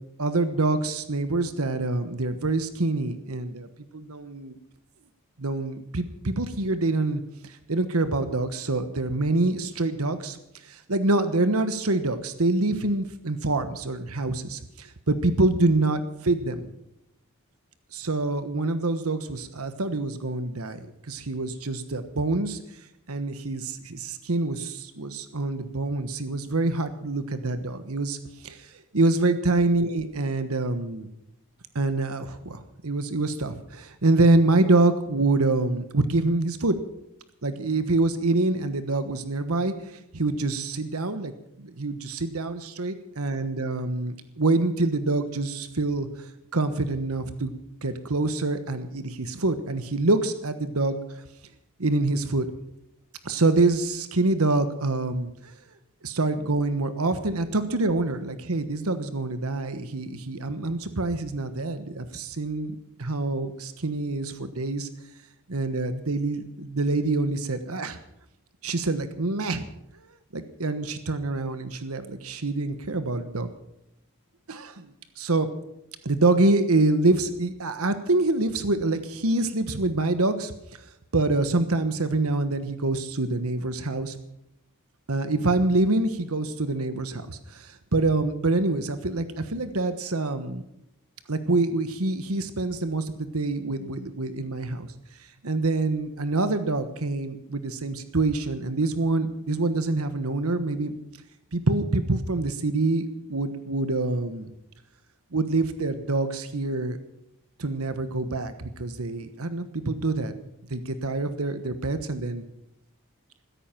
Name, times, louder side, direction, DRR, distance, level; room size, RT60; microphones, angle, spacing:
voice 1, 0.2-3.7 3.9-4.6 5.4-10.4 10.6-16.7 17.9-22.6 23.1-28.2 28.4-31.1 31.7-36.8 37.4-41.3 41.6-46.3 46.5-47.5 47.8-51.2 51.8-52.5 53.2-55.5 56.0-64.9 65.5-68.0 68.6-69.7 70.3-73.5 74.5-75.5 76.0-80.5 81.1-84.2 85.1-90.6 91.3-94.9 95.4-101.0 101.5-104.5 105.3-107.0 107.6-110.3 110.7-112.4, right 2 dB, 85° right, 10 dB, 1.3 m, -26 dB
16.0 x 13.5 x 5.9 m, 0.80 s
head